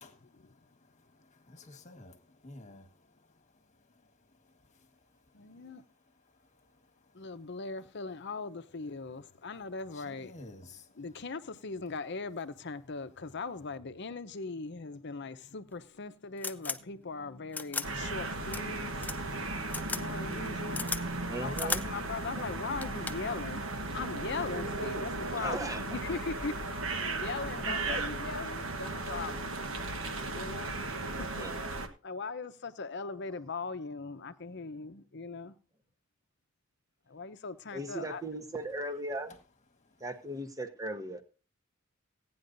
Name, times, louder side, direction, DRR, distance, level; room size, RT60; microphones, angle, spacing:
voice 1, 0.0-0.4 0.6-3.1 9.9-10.9, left 2 dB, 35° left, 1.5 m, -52 dB
voice 2, 5.3-5.8 7.1-10.6 10.9-19.6 19.9-20.9 21.4-26.5 27.0-29.5 30.3-31.5 32.0-35.6 37.1-38.2, left 4 dB, 60° left, 0.8 m, -40 dB
sound 1, 15.7-15.8 16.4-16.8 17.5-17.9 18.5-18.6 19.0-19.2 19.7-20.0 20.3-21.0 21.5-21.8 22.4-22.5 22.8-23.3 24.5-24.8, left 3 dB, 10° left, 0.5 m, -35 dB
sound 2, 17.8-31.9, right 2 dB, 70° right, 1.4 m, -36 dB
voice 3, 21.2-21.9 25.3-25.8 26.1-26.2 27.6-28.0 31.4-31.6 37.7-39.4 40.0-41.2, right 1 dB, 15° right, 1.1 m, -38 dB
17.0 x 9.5 x 2.7 m
head